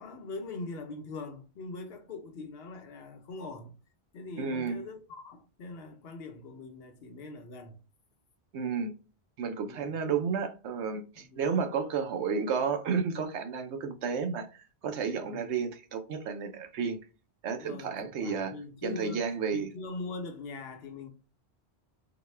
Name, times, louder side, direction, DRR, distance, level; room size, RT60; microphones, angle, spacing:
voice 1, 0.0-3.7 4.1-7.8 9.7-10.0 11.2-11.4 15.2-15.7 17.6-19.2 19.5-21.1, left 3 dB, 65° left, 1.0 m, -42 dB
voice 2, 4.4-4.8 8.5-8.9 9.4-17.0 17.4-18.5 18.8-19.7, right 6 dB, 90° right, 1.0 m, -32 dB
4.0 x 2.2 x 3.2 m
omnidirectional pair, 1.1 m